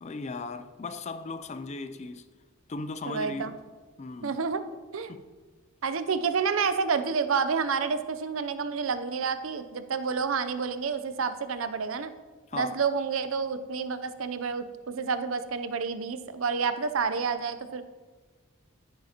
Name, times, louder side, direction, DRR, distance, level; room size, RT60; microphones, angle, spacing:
voice 1, 0.0-2.3 2.7-3.6 4.0-4.4 5.1-5.2 12.5-12.8, left 3 dB, 35° left, 0.4 m, -37 dB
voice 2, 3.1-3.5 4.2-4.6 4.9-5.1 5.8-12.1 12.5-17.8, right 5 dB, 80° right, 0.6 m, -29 dB
11.0 x 10.0 x 2.9 m
head